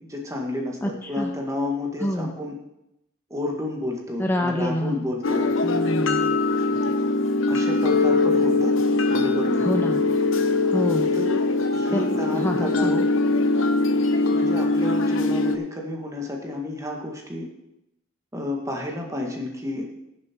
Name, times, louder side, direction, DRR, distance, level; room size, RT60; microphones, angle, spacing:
voice 1, 0.0-2.5 3.3-5.5 7.5-8.7 9.1-9.7 11.1-11.4 11.7-13.0 14.3-17.5 18.3-19.9, left 1 dB, 15° right, 0 dB, 1.8 m, -31 dB
voice 2, 0.8-1.3 2.0-2.3 4.2-5.1 5.6-6.4 9.6-10.0 10.7-11.1 11.9-13.1, left 1 dB, 10° left, 3 dB, 0.6 m, -27 dB
sound 1, 5.2-15.6, left 3 dB, 70° left, 0.9 m, -22 dB
17.0 x 7.4 x 4.5 m, 0.86 s
head